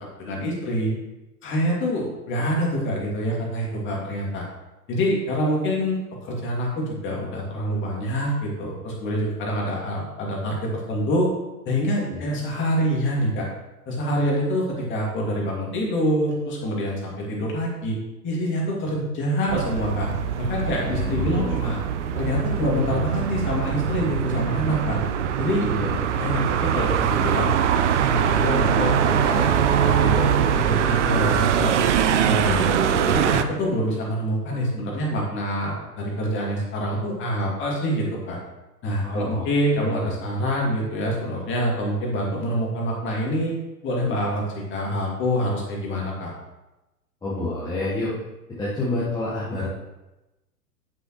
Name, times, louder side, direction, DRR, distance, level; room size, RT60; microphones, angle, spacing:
voice 1, 0.2-0.9 1.4-4.4 4.9-6.0 6.2-11.3 11.7-13.5 13.9-18.0 18.2-20.1 20.4-21.8 22.1-25.0 25.4-25.7 26.2-27.6 28.0-31.7 32.2-38.4 38.8-43.5 43.8-46.3, equal, 25° left, -2 dB, 2.4 m, -26 dB
voice 2, 12.1-12.4 20.8-21.6 25.7-26.0 39.0-39.4 39.8-40.1 47.2-48.1 48.6-49.7, left 2 dB, 10° left, -8 dB, 1.3 m, -28 dB
sound 1, 19.5-33.4, right 8 dB, 45° right, 0.6 m, -22 dB
9.0 x 7.8 x 3.1 m, 1.0 s
figure-of-eight pair, 105°, 49 cm